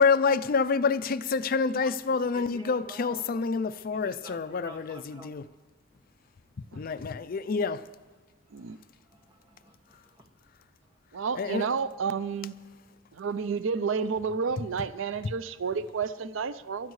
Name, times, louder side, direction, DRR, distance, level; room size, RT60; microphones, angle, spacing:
voice 1, 0.0-5.4 6.7-7.8 11.4-11.7, left 5 dB, 50° left, 0.4 m, -27 dB
voice 2, 1.8-3.5 3.9-5.3 8.4-10.3 10.8-11.0, right 2 dB, 25° right, 1.9 m, -51 dB
voice 3, 11.1-12.5 13.1-16.9, right 5 dB, 90° right, 0.5 m, -31 dB
28.0 x 13.0 x 3.2 m
head